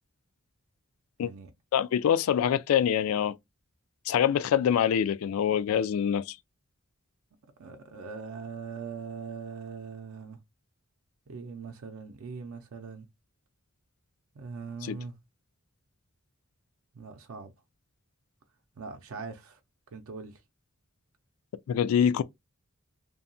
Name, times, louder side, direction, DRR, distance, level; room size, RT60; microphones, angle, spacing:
voice 1, 1.7-3.3 4.1-6.4 14.8-15.0 21.7-22.2, left 8 dB, 80° left, 0.3 m, -25 dB
voice 2, 7.6-10.4 11.3-13.1 14.4-15.1 16.9-17.5 18.8-19.6 19.9-20.4, right 5 dB, 80° right, 0.5 m, -41 dB
2.7 x 2.2 x 2.6 m
head